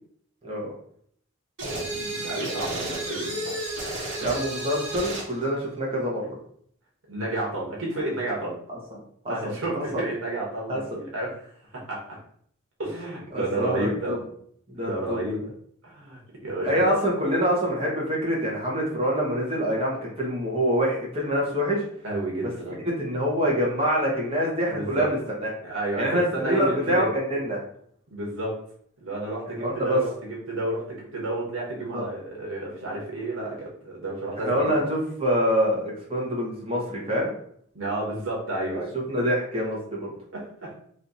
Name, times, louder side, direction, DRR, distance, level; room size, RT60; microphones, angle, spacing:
sound 1, 1.6-5.3, right 1 dB, 65° right, 1.5 m, -31 dB
voice 1, 1.7-3.7 7.1-8.6 9.3-11.5 11.9-12.0 12.8-14.1 14.8-15.4 15.8-16.8 22.0-22.8 24.7-25.1 25.6-26.1 26.3-27.1 28.1-28.5 29.0-34.8 37.7-38.9 40.3-40.7, right 1 dB, 85° right, -4 dB, 1.3 m, -31 dB
voice 2, 4.2-6.3 8.7-9.0 9.2-9.3 9.9-10.0 10.7-10.8 13.3-14.2 14.7-15.2 16.6-21.8 23.0-25.5 25.9-27.6 29.5-30.0 31.9-32.0 34.4-37.3 39.1-40.1, equal, 30° right, -3 dB, 1.2 m, -25 dB
3.3 x 2.8 x 4.0 m, 0.64 s
head